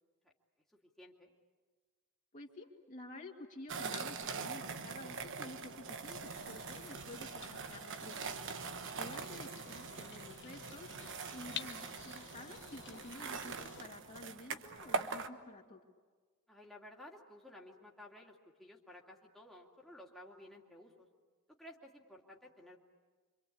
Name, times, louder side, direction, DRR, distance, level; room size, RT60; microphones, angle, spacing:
voice 1, 1.0-1.3 16.5-21.1 21.6-22.8, left 1 dB, ahead, -3 dB, 2.5 m, -55 dB
voice 2, 2.3-8.2 9.0-10.9 11.3-15.8, left 1 dB, 35° left, 0 dB, 2.3 m, -51 dB
sound 1, 3.7-15.3, right 4 dB, 60° right, 1.2 m, -43 dB
sound 2, 6.3-13.9, left 7 dB, 55° left, 1.1 m, -52 dB
27.0 x 25.5 x 8.6 m, 1.4 s
head